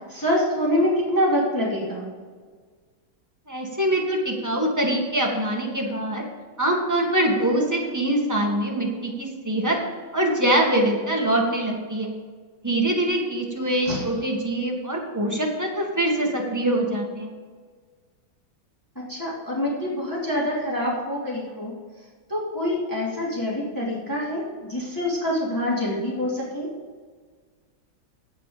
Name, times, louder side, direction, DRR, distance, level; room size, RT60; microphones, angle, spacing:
voice 1, 0.1-2.0 13.9-14.0 19.0-21.7 22.3-26.7, left 1 dB, 10° left, -6 dB, 2.8 m, -25 dB
voice 2, 3.5-6.2 6.6-9.8 10.1-12.1 12.6-17.3, right 1 dB, 10° right, -1 dB, 1.8 m, -24 dB
16.5 x 6.3 x 5.2 m, 1.5 s
omnidirectional pair, 2.1 m